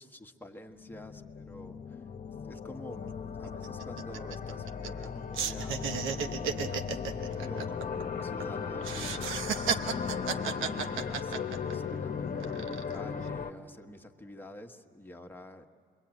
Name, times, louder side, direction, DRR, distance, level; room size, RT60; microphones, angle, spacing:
voice 1, 0.0-2.1 2.4-9.5 9.8-10.0 10.3-15.7, equal, 10° left, 4 dB, 1.4 m, -48 dB
sound 1, 0.7-13.5, left 6 dB, 45° left, 1.2 m, -37 dB
sound 2, 2.5-2.6 2.9-3.1 3.4-5.1 5.3-8.4 8.8-11.9 12.4-13.0, right 6 dB, 90° right, 1.1 m, -34 dB
26.0 x 23.0 x 8.9 m, 2.5 s
cardioid pair, 90°, 20 cm